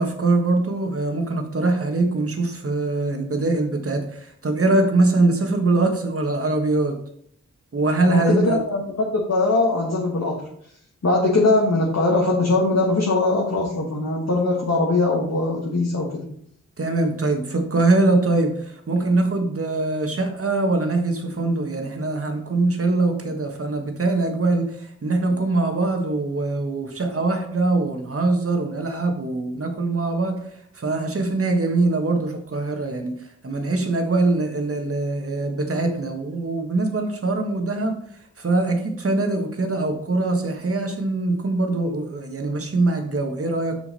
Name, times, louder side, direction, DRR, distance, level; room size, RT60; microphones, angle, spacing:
voice 1, 0.0-6.9 7.7-8.6 16.8-30.4 30.7-33.1 33.4-37.9 38.4-43.8, right 2 dB, 45° right, 4 dB, 1.4 m, -22 dB
voice 2, 8.1-10.4 11.0-16.3, left 2 dB, 60° left, -3 dB, 1.5 m, -21 dB
6.2 x 6.1 x 4.2 m, 0.66 s
wide cardioid pair, 75°, 31 cm